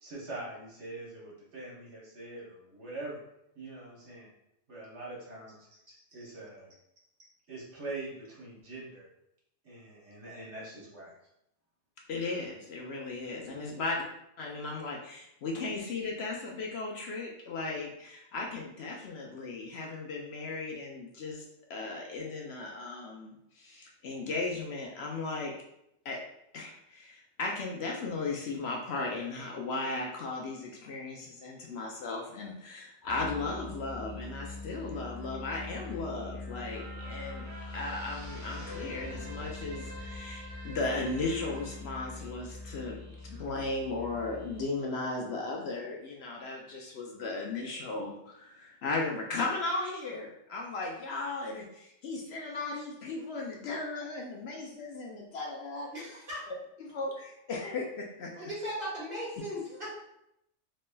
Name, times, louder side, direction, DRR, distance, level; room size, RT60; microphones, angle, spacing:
voice 1, 0.0-3.2 3.5-4.3 4.7-5.8 6.1-6.8 7.5-9.1 9.6-11.1, right 2 dB, 65° right, -5 dB, 1.4 m, -43 dB
voice 2, 12.1-14.0 14.4-21.4 21.7-25.5 26.0-26.2 26.5-55.9 56.8-58.3, left 3 dB, 65° left, -1 dB, 0.8 m, -36 dB
voice 3, 13.7-14.0 55.9-56.4 58.3-59.9, equal, 45° right, -6 dB, 1.5 m, -38 dB
Musical instrument, 33.0-44.8, left 2 dB, 35° left, 1.0 m, -43 dB
sound 1, 36.7-43.3 43.8-43.9, equal, 20° right, 0.5 m, -47 dB
3.9 x 3.2 x 2.2 m, 0.80 s
omnidirectional pair, 1.3 m